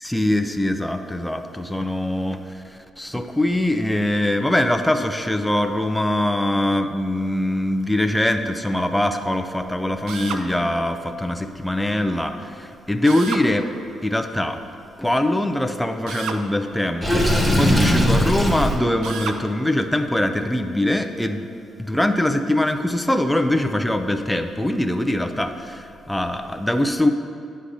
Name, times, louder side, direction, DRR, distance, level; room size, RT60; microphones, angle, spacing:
voice 1, 0.0-13.7 14.0-14.6 15.0-21.5 21.8-27.1, left 1 dB, 5° left, 6 dB, 0.4 m, -22 dB
Drill, 10.1-10.5 13.1-13.5 16.1-16.4 19.0-19.4, right 6 dB, 85° right, 0.4 m, -31 dB
Water / Sink (filling or washing), 17.0-18.8, equal, 10° right, 0.8 m, -18 dB
9.7 x 6.3 x 2.7 m, 2.4 s
cardioid pair, 90°, 0 cm